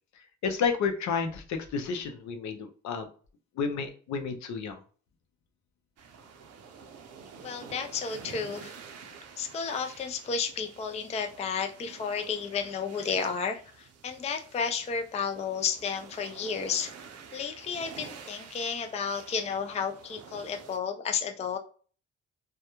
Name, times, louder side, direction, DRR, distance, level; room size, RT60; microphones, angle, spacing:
voice 1, 0.4-3.1 3.6-4.8, left 5 dB, 70° left, 6 dB, 0.6 m, -31 dB
sound 1, 6.0-20.8, right 6 dB, 55° right, 0.5 m, -49 dB
voice 2, 7.4-8.7 9.4-16.9 17.3-21.6, left 6 dB, 25° left, 5 dB, 0.3 m, -32 dB
2.3 x 2.1 x 2.9 m, 0.41 s
cardioid pair, 90°, 30 cm